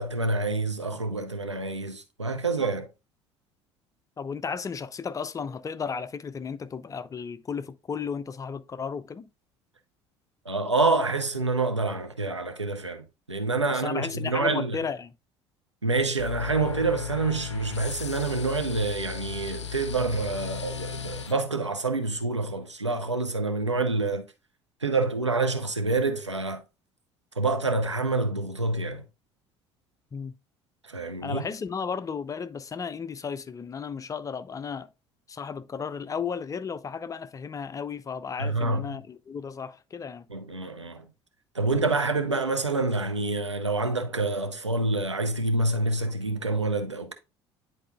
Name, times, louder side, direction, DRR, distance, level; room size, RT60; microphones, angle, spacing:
voice 1, 0.0-2.9 10.5-14.8 15.8-24.2 24.8-26.6 27.4-29.0 30.8-31.4 38.4-39.0 40.3-41.1 41.5-47.1, right 3 dB, 90° right, 0.6 m, -27 dB
voice 2, 4.2-9.2 13.7-15.1 30.1-30.3 31.2-34.9 35.3-40.3, left 6 dB, 25° left, 0.4 m, -34 dB
sound 1, 16.2-21.3, left 7 dB, 85° left, 0.4 m, -36 dB
9.9 x 4.0 x 2.4 m
figure-of-eight pair, 60°, 15 cm